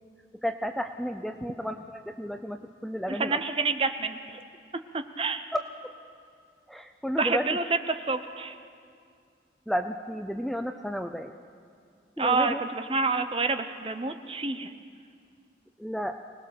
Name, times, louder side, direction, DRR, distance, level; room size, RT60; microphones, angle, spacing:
voice 1, 0.4-3.4 5.5-5.6 6.7-7.6 9.7-11.3 12.2-12.6 15.8-16.2, equal, ahead, 6 dB, 0.5 m, -32 dB
voice 2, 3.1-4.2 5.2-5.4 7.2-7.6 8.0-8.5 12.2-14.7, right 4 dB, 30° right, 9 dB, 0.8 m, -28 dB
24.5 x 19.0 x 6.7 m, 2.2 s
head